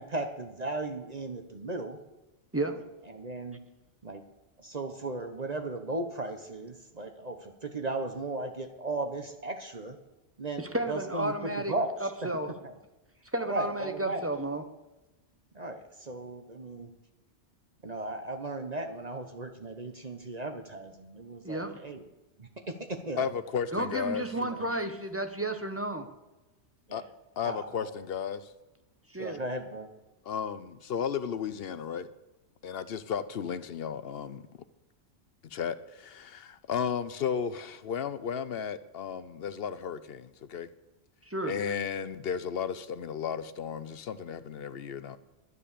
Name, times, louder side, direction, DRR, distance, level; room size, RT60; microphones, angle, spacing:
voice 1, 0.0-2.0 3.1-3.6 4.0-4.2 4.6-10.0 10.4-11.9 12.2-12.3 12.6-12.7 13.5-14.2 15.5-16.9 17.8-22.0 22.4-23.3 24.3-24.6 26.9-27.1 27.4-27.9 29.2-29.9, right 2 dB, 35° right, 6 dB, 1.0 m, -36 dB
voice 2, 2.5-2.8 10.6-11.7 12.0-12.5 13.3-14.6 21.4-21.8 23.7-26.1 29.1-29.4 41.3-41.5, right 1 dB, 15° right, 7 dB, 0.8 m, -32 dB
voice 3, 23.2-24.2 26.9-27.0 27.4-28.5 30.2-32.1 32.6-34.4 35.4-40.7 41.4-45.2, left 7 dB, 60° left, 14 dB, 0.8 m, -34 dB
11.0 x 10.0 x 6.7 m, 1.0 s
omnidirectional pair, 1.2 m